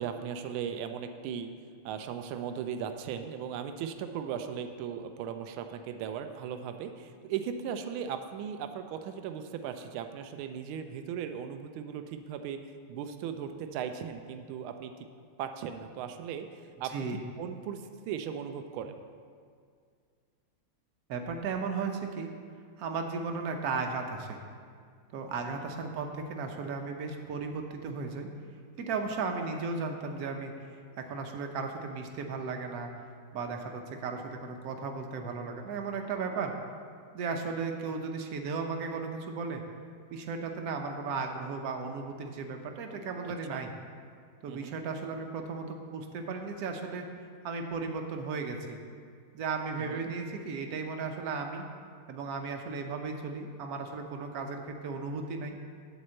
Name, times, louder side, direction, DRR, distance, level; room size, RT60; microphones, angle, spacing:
voice 1, 0.0-1.5 1.8-15.1 15.4-17.1 17.4-19.0 25.5-25.7 37.9-38.0 43.2-43.7 44.5-44.8 49.8-50.1, right 8 dB, 80° right, 7 dB, 1.4 m, -38 dB
voice 2, 21.1-22.3 22.8-24.4 25.1-28.3 28.8-32.9 33.3-36.5 37.1-39.6 40.1-43.7 44.4-47.0 47.4-48.8 49.3-51.7 52.1-55.6, right 4 dB, 60° right, 4 dB, 1.0 m, -35 dB
9.7 x 4.2 x 7.6 m, 2.1 s
omnidirectional pair, 2.3 m